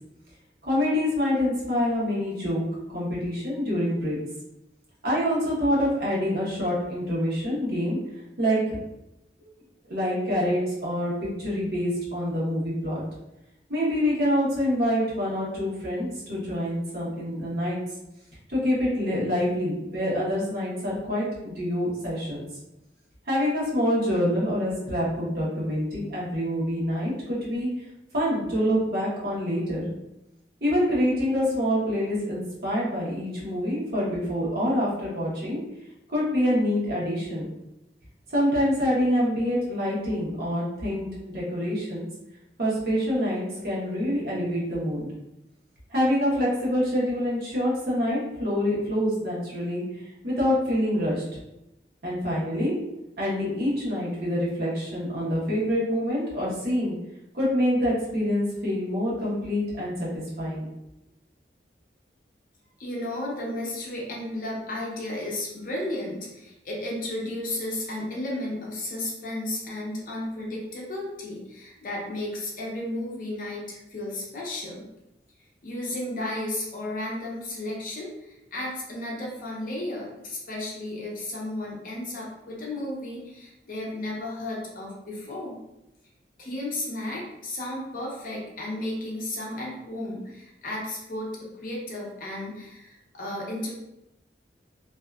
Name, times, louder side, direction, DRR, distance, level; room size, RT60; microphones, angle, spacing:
voice 1, 0.6-2.6 2.9-4.2 5.0-8.0 8.4-8.8 9.4-9.5 9.9-13.0 13.7-17.8 18.5-22.4 23.3-27.7 28.1-29.9 30.6-35.6 36.1-37.5 38.3-41.1 41.3-42.0 42.6-45.1 45.9-49.8 50.2-51.2 52.0-52.7 53.2-56.9 57.3-60.7, equal, 55° right, -6 dB, 0.9 m, -26 dB
voice 2, 62.8-74.9 75.6-85.6 86.4-93.7, left 1 dB, 50° left, -3 dB, 0.6 m, -33 dB
2.6 x 2.3 x 2.3 m, 0.91 s
head